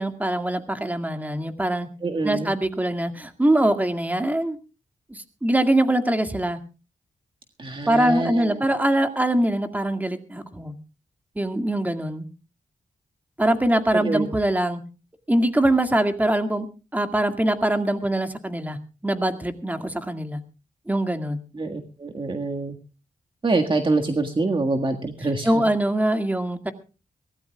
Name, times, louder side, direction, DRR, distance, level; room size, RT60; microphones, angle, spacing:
voice 1, 0.0-1.9 2.2-4.6 5.1-6.6 7.9-10.7 11.4-12.3 13.4-14.8 15.3-16.7 16.9-18.8 19.0-20.4 20.9-21.4 25.4-26.7, right 1 dB, 10° right, 7 dB, 2.0 m, -23 dB
voice 2, 2.0-2.5 7.6-8.6 13.9-14.3 21.5-22.7 23.4-25.7, right 3 dB, 40° right, 3 dB, 1.7 m, -25 dB
23.5 x 17.0 x 2.3 m, 0.32 s
cardioid pair, 85°, 14 cm